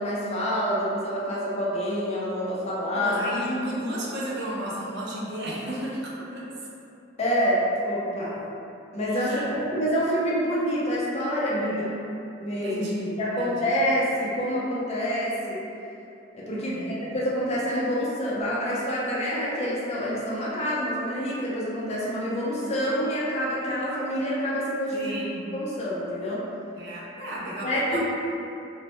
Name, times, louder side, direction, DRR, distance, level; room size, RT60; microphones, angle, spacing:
voice 1, 0.0-3.2 7.2-8.4 8.9-11.8 12.4-12.8 13.2-15.6 16.3-25.1 25.5-26.4 27.6-28.0, equal, 35° left, -6 dB, 0.4 m, -27 dB
voice 2, 2.9-6.5 9.1-9.5 11.6-11.9 12.6-13.7 16.5-17.1 24.9-25.4 26.8-28.0, equal, 60° right, -6 dB, 0.5 m, -33 dB
2.1 x 2.0 x 2.9 m, 2.7 s
head